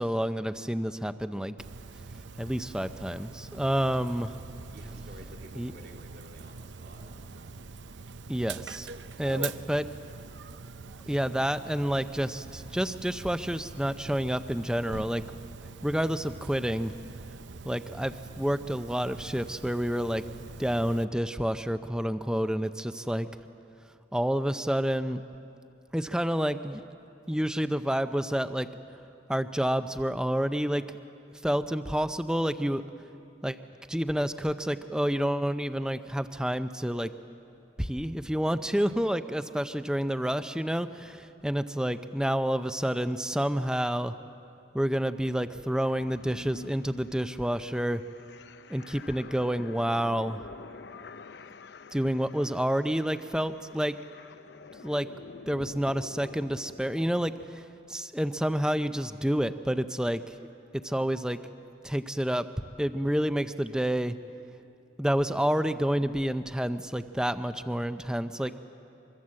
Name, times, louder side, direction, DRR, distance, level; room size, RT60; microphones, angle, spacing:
voice 1, 0.0-1.5 2.4-4.3 5.6-5.7 8.3-8.9 9.2-9.9 11.1-15.2 15.8-16.9 17.6-23.3 24.1-25.2 25.9-26.8 27.3-28.7 29.3-30.8 31.4-32.8 33.4-33.6 33.9-37.1 37.8-44.2 44.7-48.0 48.7-50.4 51.9-54.0 54.8-55.1 55.5-60.4 60.7-61.4 61.8-62.5 62.8-64.2 65.0-68.5, equal, 5° right, 10 dB, 0.6 m, -29 dB
Dog, 1.6-21.0, right 4 dB, 90° right, 0.7 m, -44 dB
voice 2, 4.7-7.1 9.2-9.8 68.3-68.5, right 1 dB, 65° right, 1 dB, 3.4 m, -50 dB
sound 1, 45.7-57.4, left 4 dB, 70° left, 0.6 m, -48 dB
24.5 x 24.0 x 7.6 m, 2.6 s
head